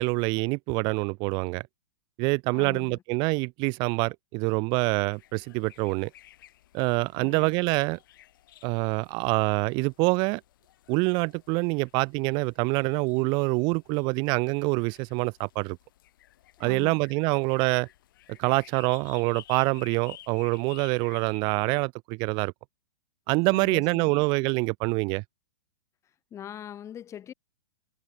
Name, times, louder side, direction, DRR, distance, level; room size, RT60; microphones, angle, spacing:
voice 1, 0.0-1.6 2.2-6.1 6.7-8.0 8.6-10.4 10.9-15.8 16.6-17.9 18.4-22.5 23.3-25.2, right 29 dB, 35° right, 0.5 m, -26 dB
voice 2, 2.5-3.0 7.2-7.5 16.6-17.1 23.5-24.3 26.3-27.3, left 10 dB, 25° left, 1.2 m, -42 dB
sound 1, 5.1-21.4, left 13 dB, 60° left, 3.3 m, -54 dB
figure-of-eight pair, 105°, 13 cm